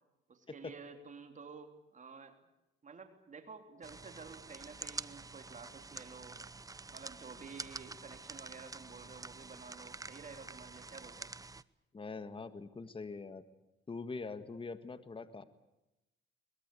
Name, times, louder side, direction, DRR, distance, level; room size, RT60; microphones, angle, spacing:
voice 1, 0.3-2.4 2.8-6.4 6.9-11.3, right 5 dB, 40° right, 6 dB, 3.4 m, -51 dB
sound 1, 3.8-11.6, right 3 dB, 15° right, 0.8 m, -48 dB
voice 2, 11.9-13.4 13.9-15.4, left 4 dB, 25° left, 11 dB, 1.7 m, -43 dB
23.0 x 21.5 x 8.5 m, 0.93 s
cardioid pair, 90°, 20 cm